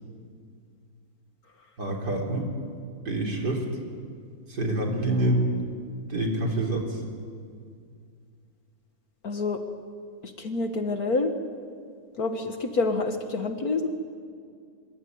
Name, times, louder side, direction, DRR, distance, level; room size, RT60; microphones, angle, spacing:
voice 1, 1.8-2.5 3.1-3.7 4.5-5.5 6.1-7.0, right 1 dB, 60° right, 1 dB, 4.2 m, -26 dB
voice 2, 9.2-9.6 10.2-11.3 12.2-13.9, left 3 dB, 55° left, 6 dB, 1.8 m, -27 dB
25.5 x 21.5 x 9.5 m, 2.2 s
omnidirectional pair, 2.0 m